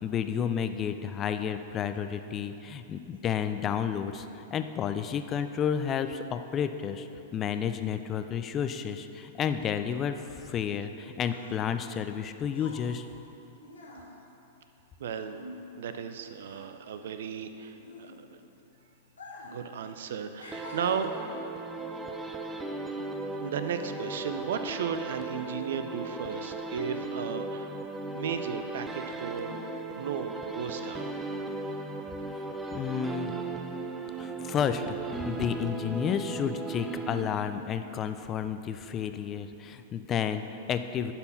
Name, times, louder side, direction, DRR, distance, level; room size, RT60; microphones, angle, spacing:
voice 1, 0.0-13.1 32.7-33.3 34.2-35.0 35.2-41.1, left 8 dB, 30° left, 9 dB, 0.5 m, -31 dB
sound 1, 11.3-16.1 16.4-18.6 19.1-19.7 19.9-21.4 22.1-22.3, left 2 dB, 85° left, 1.5 m, -48 dB
voice 2, 15.0-15.4 15.8-18.4 19.4-21.1 23.0-23.1 23.4-27.7 28.1-29.6 30.0-31.1, right 7 dB, 70° right, 9 dB, 0.5 m, -35 dB
sound 2, 20.5-37.7, right 2 dB, 15° right, 0.6 m, -37 dB
10.5 x 4.3 x 5.6 m, 3.0 s
hypercardioid pair, 105°, 0 cm